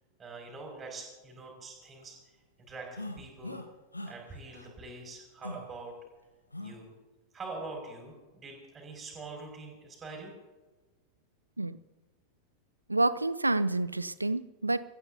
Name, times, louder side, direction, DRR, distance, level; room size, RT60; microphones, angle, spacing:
voice 1, 0.2-2.2 2.7-3.6 4.1-5.9 6.6-6.9 7.3-10.3, right 3 dB, 20° right, 0 dB, 5.8 m, -44 dB
sound 1, 3.0-3.7 3.9-4.2 4.5-4.7 5.4-5.6 6.5-6.8, left 1 dB, 85° left, 1.3 m, -40 dB
voice 2, 12.9-14.8, right 2 dB, 85° right, 16 dB, 0.6 m, -28 dB
27.5 x 14.5 x 2.8 m, 1.2 s
figure-of-eight pair, 90°, 0 cm